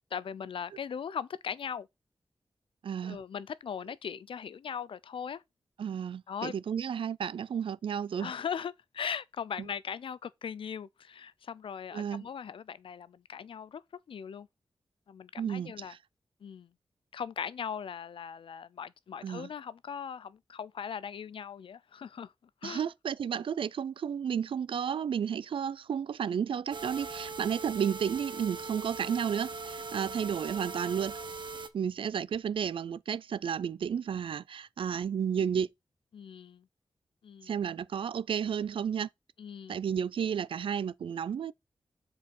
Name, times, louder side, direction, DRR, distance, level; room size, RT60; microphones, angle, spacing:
voice 1, 0.1-1.9 3.0-5.4 6.3-6.5 8.2-14.5 15.1-15.9 16.4-16.7 17.1-22.3 22.6-22.9 36.1-36.7 37.2-37.5 39.4-39.8, left 7 dB, 85° left, 0.5 m, -39 dB
voice 2, 2.8-3.2 5.8-8.3 11.9-12.3 15.4-16.0 19.2-19.5 22.6-31.1 31.7-35.7 37.4-39.1 39.7-41.5, right 8 dB, 85° right, 0.4 m, -32 dB
sound 1, 26.7-31.7, right 3 dB, 65° right, 1.0 m, -40 dB
7.4 x 4.7 x 5.3 m
wide cardioid pair, 110°, 9 cm